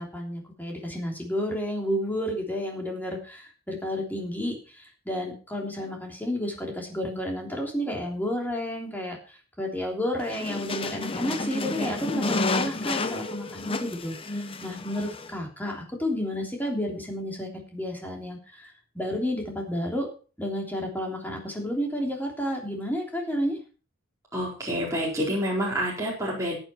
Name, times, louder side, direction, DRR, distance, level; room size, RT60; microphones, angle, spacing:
voice 1, 0.0-14.1 14.6-20.1 20.4-23.6, equal, 10° left, 0 dB, 3.3 m, -31 dB
sound 1, 10.2-15.3, left 3 dB, 25° left, 0.8 m, -31 dB
voice 2, 24.3-26.6, equal, 15° right, -5 dB, 4.3 m, -28 dB
14.5 x 9.0 x 4.5 m, 0.36 s
head